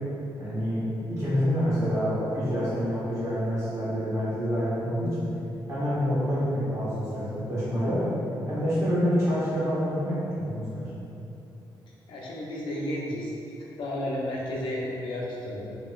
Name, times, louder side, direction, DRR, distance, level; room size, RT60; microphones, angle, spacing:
voice 1, 0.4-5.3 5.7-8.0 8.5-10.9, equal, 40° right, -12 dB, 1.4 m, -27 dB
voice 2, 12.1-13.3 13.6-15.6, left 1 dB, 85° left, -3 dB, 0.5 m, -32 dB
2.8 x 2.8 x 2.4 m, 2.8 s
cardioid pair, 115°, 8 cm